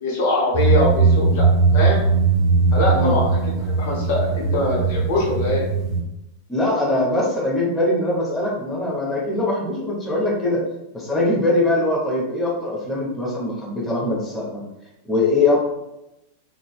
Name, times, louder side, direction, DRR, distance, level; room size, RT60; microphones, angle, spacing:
voice 1, 0.0-2.0 2.7-5.6, left 2 dB, 50° left, -3 dB, 0.9 m, -23 dB
sound 1, 0.5-6.0, right 4 dB, 20° right, 0.7 m, -19 dB
voice 2, 6.5-10.6 10.9-14.6 15.0-15.6, left 2 dB, 10° left, -4 dB, 0.8 m, -22 dB
3.8 x 2.1 x 2.3 m, 0.90 s
figure-of-eight pair, 90°, 0 cm